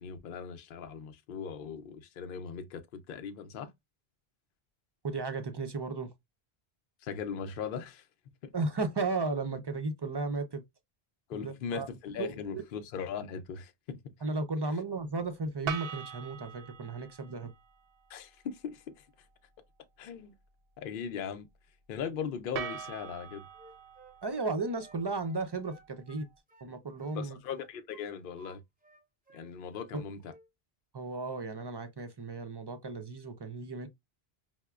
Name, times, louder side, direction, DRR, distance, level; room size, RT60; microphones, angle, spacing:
voice 1, 0.0-3.7 7.0-8.0 8.4-8.5 11.3-14.0 18.1-19.1 20.0-20.3 20.8-21.5 21.9-23.4 27.1-28.6 29.3-30.3, left 7 dB, 65° left, 0.7 m, -39 dB
voice 2, 5.0-6.1 8.5-10.6 11.3-11.9 12.2-12.6 14.2-17.5 24.2-26.3 26.6-27.4 29.9-30.0 30.9-33.9, right 3 dB, 35° right, 0.4 m, -34 dB
sound 1, 15.7-17.7 22.5-25.7, right 8 dB, 70° right, 0.7 m, -42 dB
Wind instrument woodwind instrument, 23.5-26.7 27.0-28.6 28.8-29.9 30.2-30.5, right 2 dB, 10° right, 0.7 m, -58 dB
5.7 x 2.1 x 2.2 m
omnidirectional pair, 1.1 m